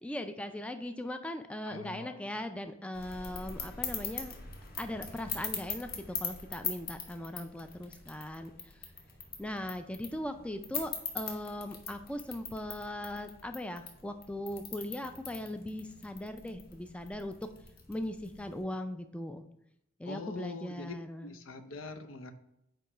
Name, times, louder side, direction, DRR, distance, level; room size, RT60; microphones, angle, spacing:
voice 1, 0.0-4.3 4.8-8.5 9.4-17.4 17.9-19.4 20.0-21.3, left 1 dB, 5° left, 7 dB, 0.3 m, -39 dB
voice 2, 1.7-2.4 20.0-22.3, left 3 dB, 85° left, 9 dB, 0.7 m, -44 dB
sound 1, 2.9-18.6, left 5 dB, 50° left, 1.3 m, -42 dB
9.0 x 3.1 x 4.9 m, 0.81 s
head